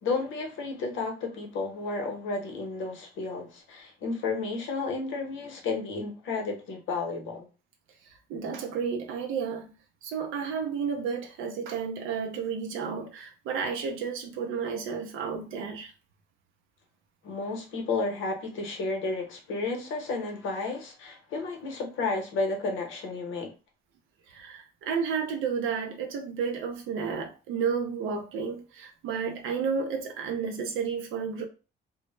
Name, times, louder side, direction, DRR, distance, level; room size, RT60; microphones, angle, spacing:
voice 1, 0.0-7.5 17.2-23.5, left 3 dB, 85° left, 0.8 m, -32 dB
voice 2, 8.3-9.7 10.0-15.9 24.3-31.5, right 6 dB, 85° right, 0.5 m, -32 dB
2.0 x 2.0 x 3.1 m
cardioid pair, 90°, 20 cm